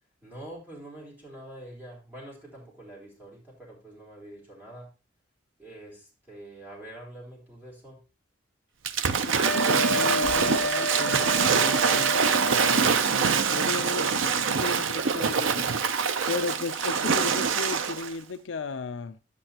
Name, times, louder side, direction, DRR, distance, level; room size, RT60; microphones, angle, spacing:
voice 1, 0.2-4.9 5.6-8.0, right 1 dB, 10° right, 3.7 m, -45 dB
Waves surf / Splash splatter, 8.9-18.1, right 6 dB, 85° right, 0.6 m, -24 dB
voice 2, 9.2-12.2 12.6-15.7 16.3-19.2, left 4 dB, 70° left, 0.5 m, -35 dB
sound 1, 9.4-12.9, left 1 dB, 70° right, 1.3 m, -30 dB
10.0 x 8.3 x 2.9 m
head